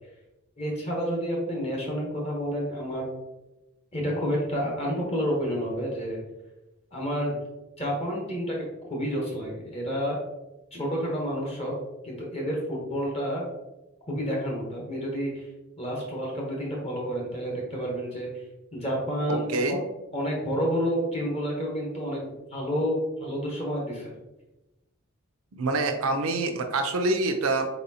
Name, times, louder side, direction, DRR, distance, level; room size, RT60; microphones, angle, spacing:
voice 1, 0.6-3.1 3.9-6.2 6.9-7.4 7.8-10.2 10.7-11.7 12.0-13.4 14.1-15.5 15.8-18.3 18.7-19.8 20.1-24.1, equal, 30° left, -2 dB, 0.9 m, -29 dB
voice 2, 19.3-19.8 25.5-27.7, right 2 dB, 85° right, 6 dB, 0.6 m, -26 dB
4.1 x 4.0 x 2.7 m, 1.0 s
head